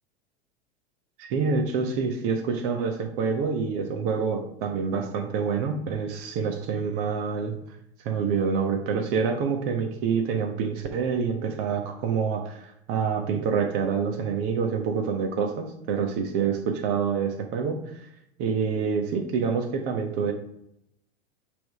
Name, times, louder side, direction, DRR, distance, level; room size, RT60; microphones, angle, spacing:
voice 1, 1.2-7.5 8.0-18.1 18.4-20.3, right 6 dB, 50° right, 3 dB, 1.2 m, -27 dB
9.2 x 3.7 x 4.7 m, 0.79 s
hypercardioid pair, 100°, 31 cm